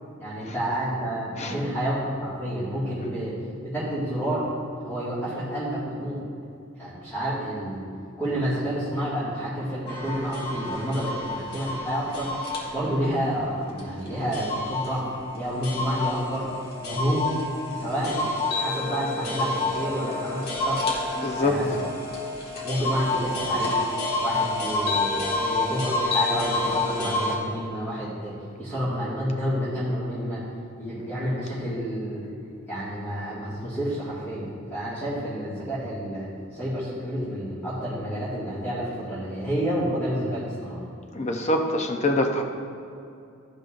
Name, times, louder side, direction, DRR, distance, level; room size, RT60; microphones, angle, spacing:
voice 1, 0.2-3.4 3.6-4.5 4.8-6.2 6.8-7.8 8.2-12.3 12.7-16.4 16.8-17.3 17.7-18.2 18.5-20.8 21.4-21.8 22.6-23.8 24.2-30.4 30.8-32.2 32.7-40.8, equal, 10° left, -13 dB, 1.8 m, -29 dB
sound 1, 9.9-27.4, left 2 dB, 50° left, 1.3 m, -29 dB
voice 2, 21.2-21.6 41.1-42.4, left 1 dB, 35° left, 4 dB, 0.6 m, -24 dB
12.5 x 5.3 x 2.5 m, 2.6 s
head